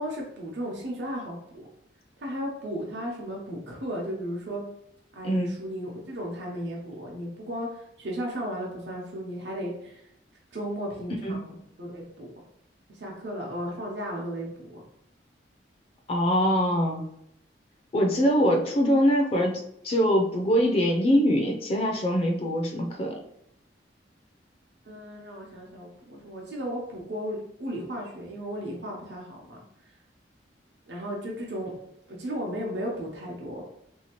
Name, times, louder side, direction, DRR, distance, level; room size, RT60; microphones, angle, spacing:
voice 1, 0.0-1.4 2.2-4.6 5.1-10.0 10.5-12.3 13.0-14.8 24.9-29.6 30.9-31.7 32.1-33.6, equal, 75° right, -2 dB, 0.8 m, -35 dB
voice 2, 5.2-5.6 11.2-11.5 16.1-17.0 17.9-23.2, equal, 35° left, 1 dB, 0.4 m, -23 dB
3.2 x 2.8 x 2.9 m, 0.76 s
head